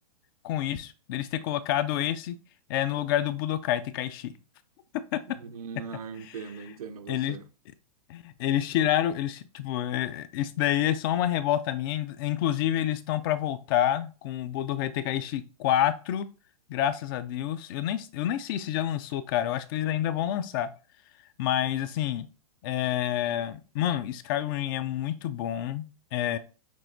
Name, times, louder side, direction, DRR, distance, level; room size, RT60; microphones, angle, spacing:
voice 1, 0.4-2.4 2.7-4.3 5.1-5.2 6.2-6.4 7.1-7.4 8.1-16.3 16.7-20.7 21.4-22.3 22.6-25.9 26.1-26.4, left 11 dB, 40° left, 0.4 m, -28 dB
voice 2, 5.4-7.5, right 6 dB, 80° right, 0.6 m, -40 dB
6.0 x 2.3 x 2.6 m
hypercardioid pair, 135°, 19 cm